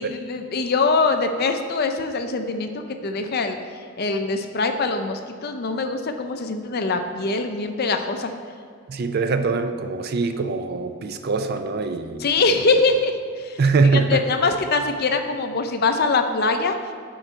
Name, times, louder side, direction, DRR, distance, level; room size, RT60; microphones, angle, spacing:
voice 1, 0.0-3.6 4.0-8.3 12.2-13.1 13.4-13.6 13.9-16.8, left 3 dB, 45° left, 6 dB, 0.5 m, -23 dB
voice 2, 8.9-12.2 13.6-14.3, right 4 dB, 45° right, 9 dB, 0.4 m, -22 dB
11.0 x 3.9 x 4.4 m, 2.1 s
head